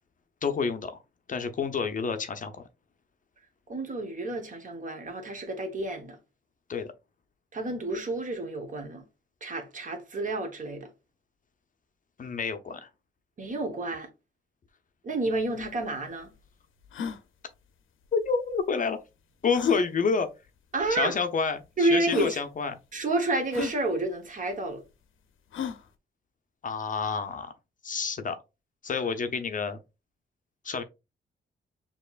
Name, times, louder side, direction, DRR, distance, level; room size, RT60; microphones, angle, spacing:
voice 1, 0.4-1.0 1.3-2.6 6.7-6.9 12.2-12.9 18.1-19.0 19.4-20.3 20.9-22.8 26.6-27.5 27.8-28.4 28.8-29.8 30.6-30.8, left 5 dB, 40° left, 0.5 m, -28 dB
voice 2, 3.7-6.2 7.5-9.0 9.4-10.9 13.4-14.1 15.0-16.3 20.7-21.1 21.8-22.4 22.9-24.8, right 2 dB, 40° right, 1.1 m, -29 dB
sound 1, 15.3-15.4 15.6-15.7 16.2-16.3 16.8-17.2 18.5-18.6 19.5-19.8 20.8-20.9 21.7-21.8 22.1-22.4 23.5-23.8 25.5-25.9, left 5 dB, 80° left, 0.6 m, -34 dB
6.5 x 2.9 x 2.4 m
wide cardioid pair, 150°, 20 cm